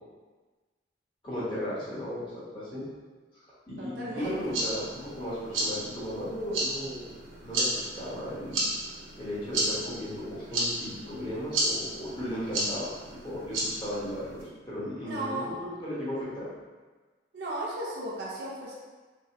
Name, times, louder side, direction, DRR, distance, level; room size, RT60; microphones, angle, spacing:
voice 1, 1.2-2.2 2.5-2.8 3.7-7.1 7.4-8.6 9.2-12.9 13.2-16.5, equal, 25° left, -9 dB, 1.0 m, -35 dB
voice 2, 3.8-4.6 15.0-15.5 17.3-18.7, right 1 dB, 60° right, -5 dB, 0.6 m, -35 dB
sound 1, 4.2-14.4, right 1 dB, 90° right, 0.9 m, -33 dB
4.0 x 2.7 x 2.9 m, 1.3 s
head